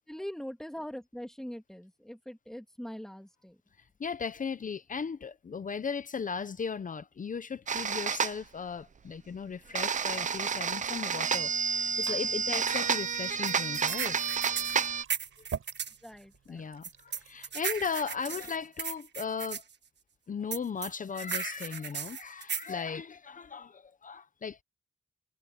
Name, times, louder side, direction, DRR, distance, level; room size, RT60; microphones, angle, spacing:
voice 1, 0.1-3.6 16.0-16.7, equal, ahead, 2.6 m, -42 dB
voice 2, 4.0-14.2 16.5-19.6 20.3-24.6, left 6 dB, 40° left, 0.7 m, -37 dB
sound 1, 7.7-8.4 9.8-15.0, right 6 dB, 35° right, 0.5 m, -30 dB
Glass / Fill (with liquid), 11.6-18.6, right 7 dB, 85° right, 7.4 m, -48 dB
sound 2, 13.5-16.0 16.8-19.6 20.5-22.7, right 7 dB, 55° right, 1.5 m, -36 dB
wide cardioid pair, 180°, 21 cm